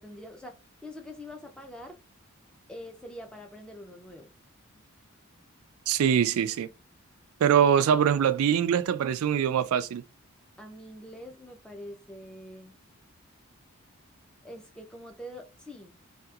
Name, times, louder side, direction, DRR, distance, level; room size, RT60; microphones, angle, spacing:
voice 1, 0.0-2.0 2.7-4.3 10.6-12.8 14.4-16.1, left 1 dB, 5° left, 0.5 m, -44 dB
voice 2, 5.9-6.7 7.4-10.0, right 8 dB, 85° right, 0.3 m, -23 dB
2.8 x 2.4 x 2.3 m
head